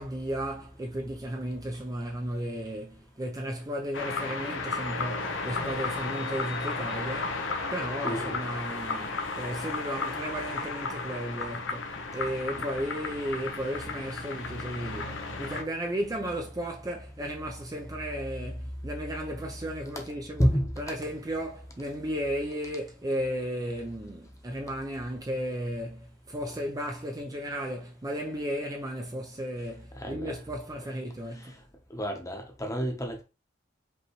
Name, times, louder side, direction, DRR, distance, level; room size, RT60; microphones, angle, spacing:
voice 1, 0.0-20.5 20.8-31.6, equal, 20° right, 0.5 m, -34 dB
sound 1, 3.9-15.6, left 3 dB, 90° left, 0.9 m, -34 dB
voice 2, 8.0-8.4 12.6-12.7 20.4-20.7 30.0-30.4 31.9-33.2, equal, 15° left, 0.9 m, -29 dB
5.3 x 3.0 x 3.0 m
head